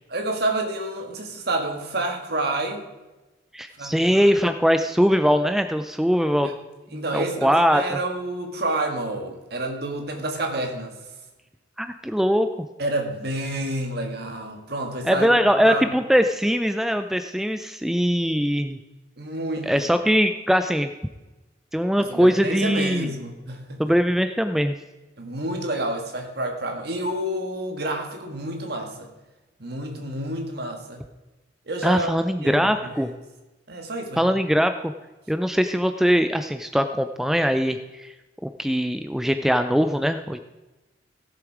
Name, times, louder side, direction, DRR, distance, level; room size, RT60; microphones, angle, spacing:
voice 1, 0.1-2.8 3.8-4.3 6.4-6.5 6.9-10.9 12.8-15.4 15.6-15.8 19.2-19.7 22.0-23.8 25.2-29.1 29.6-31.0 31.7-32.1 32.4-33.1 33.7-34.3, right 1 dB, 55° right, 3 dB, 1.8 m, -29 dB
voice 2, 3.5-6.5 7.1-8.0 11.8-12.5 15.0-18.8 19.6-20.9 21.7-23.1 23.8-24.8 31.8-33.1 34.2-34.9 35.3-38.1 38.4-40.4, equal, ahead, 8 dB, 0.3 m, -21 dB
16.0 x 7.2 x 4.8 m, 1.1 s
head